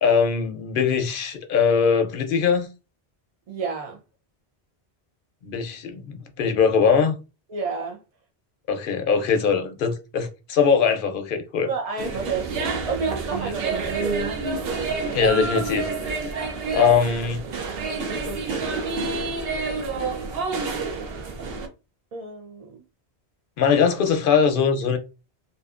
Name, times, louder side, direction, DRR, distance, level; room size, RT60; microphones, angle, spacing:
voice 1, 0.0-2.7 5.4-7.1 8.7-11.7 15.1-16.4 16.7-17.4 23.6-25.0, left 6 dB, 65° left, 0.7 m, -21 dB
voice 2, 3.5-4.0 7.5-8.0 11.7-14.3 16.7-17.0 18.1-19.1 22.1-22.8, right 4 dB, 55° right, 0.4 m, -30 dB
sound 1, 12.0-21.7, right 4 dB, 70° right, 0.8 m, -28 dB
2.6 x 2.4 x 2.4 m
omnidirectional pair, 1.1 m